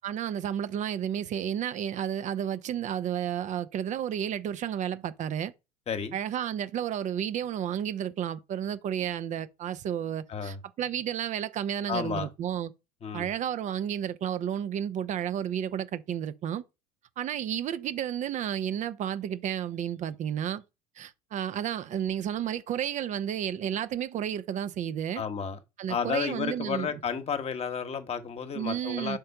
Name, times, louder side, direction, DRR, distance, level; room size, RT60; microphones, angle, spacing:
voice 1, 0.0-5.5 6.1-12.7 13.1-16.6 17.2-20.6 21.0-25.2 25.8-26.9 28.5-29.2, right 9 dB, 40° right, 0.7 m, -32 dB
voice 2, 5.9-6.2 10.3-10.6 11.9-12.3 13.0-13.3 25.1-25.6 25.9-29.2, left 6 dB, 30° left, 1.2 m, -32 dB
5.2 x 4.3 x 5.7 m
figure-of-eight pair, 70°, 19 cm